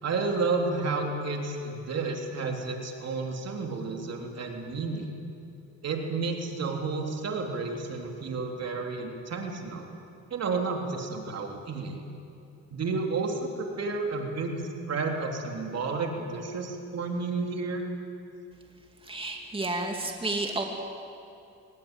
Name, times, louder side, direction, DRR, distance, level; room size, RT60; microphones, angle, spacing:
voice 1, 0.0-5.1 5.8-9.9 10.3-12.0 12.7-14.6 14.9-17.8, right 4 dB, 55° right, 2 dB, 3.6 m, -31 dB
voice 2, 19.0-20.7, right 2 dB, 20° right, 2 dB, 2.9 m, -31 dB
23.0 x 20.0 x 9.2 m, 2.7 s
cardioid pair, 90°, 30 cm